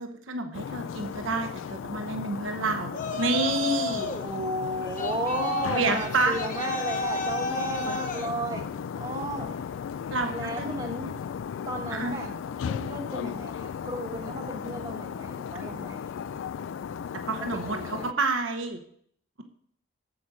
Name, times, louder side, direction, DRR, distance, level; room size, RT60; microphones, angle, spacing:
voice 1, 0.0-4.1 5.7-6.4 10.1-10.8 11.9-12.3 17.3-18.8, right 3 dB, 80° right, 5 dB, 1.0 m, -29 dB
sound 1, 0.5-18.1, left 7 dB, 75° left, 0.3 m, -36 dB
Yell, 2.9-4.3 5.0-8.3, left 3 dB, 40° left, 1.0 m, -32 dB
voice 2, 4.0-8.6 9.0-9.5 10.3-11.1 11.7-12.3 12.6-16.1 17.7-18.1, right 1 dB, 25° right, -2 dB, 1.1 m, -34 dB
8.5 x 7.7 x 4.9 m, 0.64 s
head